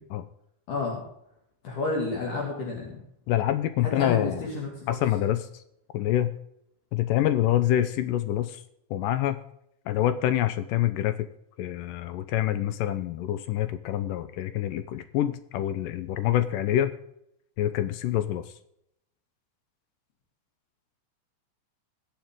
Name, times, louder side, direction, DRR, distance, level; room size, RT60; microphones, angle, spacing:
voice 1, 0.7-1.0 1.6-3.0 3.8-5.0, left 3 dB, 65° left, -2 dB, 3.6 m, -30 dB
voice 2, 3.3-4.4 4.9-5.5 5.9-6.3 6.9-8.6 8.9-9.4 9.9-11.3 11.6-17.0 17.6-18.5, left 12 dB, 80° left, 11 dB, 2.1 m, -26 dB
21.5 x 7.4 x 3.7 m, 0.76 s
omnidirectional pair, 4.2 m